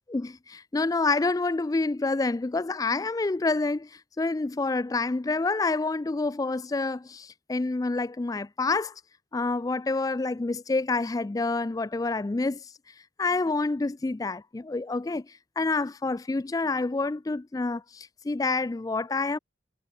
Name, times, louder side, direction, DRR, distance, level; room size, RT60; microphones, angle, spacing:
voice 1, 0.1-3.9 4.2-8.9 9.3-12.6 13.2-15.3 15.6-19.4, left 3 dB, 20° left, 0.3 m, -28 dB
head